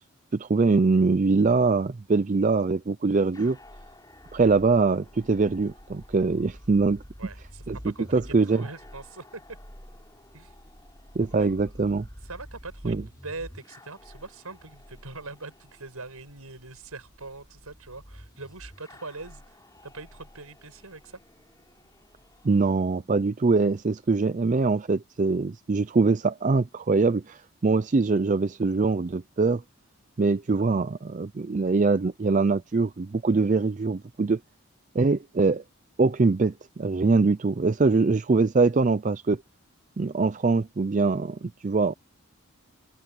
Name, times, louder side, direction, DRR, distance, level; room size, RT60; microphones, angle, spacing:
voice 1, 0.3-3.6 4.3-7.0 7.7-7.8 8.1-8.6 11.2-12.1 12.8-13.0 22.4-29.6 30.2-34.4 34.9-35.6 36.0-39.4 40.0-41.9, right 4 dB, 35° right, 0.4 m, -23 dB
sound 1, 3.3-22.7, equal, 15° left, 6.9 m, -48 dB
voice 2, 7.2-9.4 10.3-10.5 11.4-11.5 12.2-21.2, right 3 dB, 85° right, 6.5 m, -42 dB
open air
head